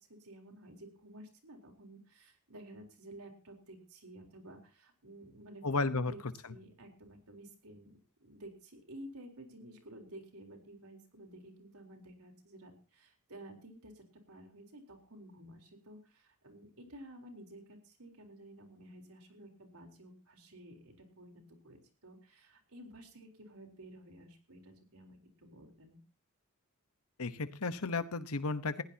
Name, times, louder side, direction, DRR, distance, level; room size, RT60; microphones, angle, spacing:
voice 1, 0.0-6.2 6.5-26.0, right 1 dB, 80° right, 3 dB, 4.0 m, -53 dB
voice 2, 5.6-6.1 27.2-28.8, left 3 dB, 80° left, 12 dB, 1.1 m, -33 dB
20.0 x 16.0 x 2.9 m, 0.34 s
head